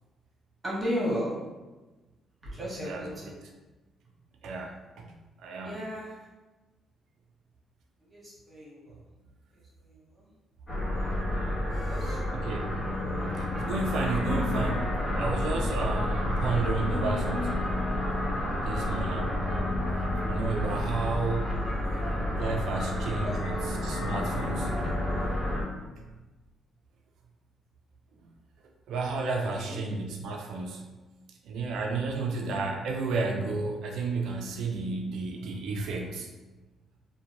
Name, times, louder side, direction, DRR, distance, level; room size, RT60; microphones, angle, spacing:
voice 1, 0.6-1.3 2.4-3.3 5.6-6.3 8.1-9.0 9.5-10.3 11.6-12.2 21.9-22.1 23.2-23.6 29.6-29.8, equal, 20° right, -5 dB, 1.2 m, -35 dB
voice 2, 2.7-3.3 4.4-5.1 5.4-5.8 12.0-12.8 13.4-17.7 18.6-19.3 20.3-21.5 22.3-24.8 28.2-28.3 28.9-30.9 31.4-36.3, right 3 dB, 80° right, 2 dB, 0.4 m, -32 dB
sound 1, 10.7-25.6, left 1 dB, 45° left, 1.4 m, -30 dB
2.8 x 2.2 x 2.5 m, 1.2 s
cardioid pair, 90°, 0 cm